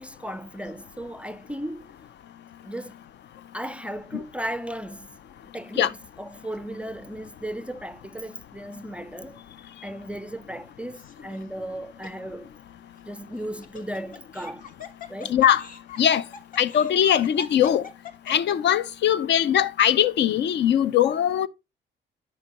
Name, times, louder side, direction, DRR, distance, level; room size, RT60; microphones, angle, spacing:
voice 1, 0.0-1.9 2.6-3.0 3.5-5.1 5.5-9.4 9.8-12.5 13.0-14.6 15.1-15.3, right 1 dB, 5° right, 0.4 m, -36 dB
Laughter, 10.9-11.4 12.0-12.1 13.4-19.0, left 5 dB, 45° left, 1.0 m, -42 dB
voice 2, 15.2-15.7 16.0-16.3 16.6-17.9 18.3-21.5, left 10 dB, 60° left, 0.4 m, -21 dB
10.5 x 5.2 x 2.8 m
cardioid pair, 90°, 20 cm